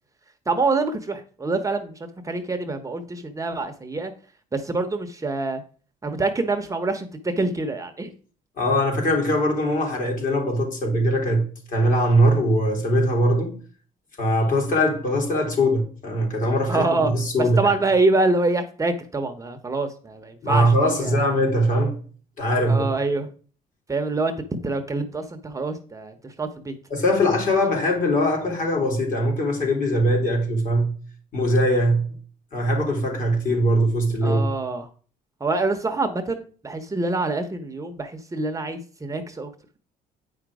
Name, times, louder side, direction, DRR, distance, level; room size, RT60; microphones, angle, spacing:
voice 1, 0.5-2.0 2.2-4.1 4.5-5.6 6.0-8.1 16.7-17.1 17.4-21.2 22.7-23.3 23.9-24.3 24.6-26.7 34.2-34.9 35.4-39.5, right 3 dB, 20° right, 0.9 m, -25 dB
voice 2, 8.6-13.5 14.2-17.6 20.4-22.0 22.4-22.9 26.9-30.9 31.3-32.0 32.5-34.5, equal, 50° left, 3.3 m, -21 dB
8.5 x 5.1 x 4.8 m
cardioid pair, 110°, 17 cm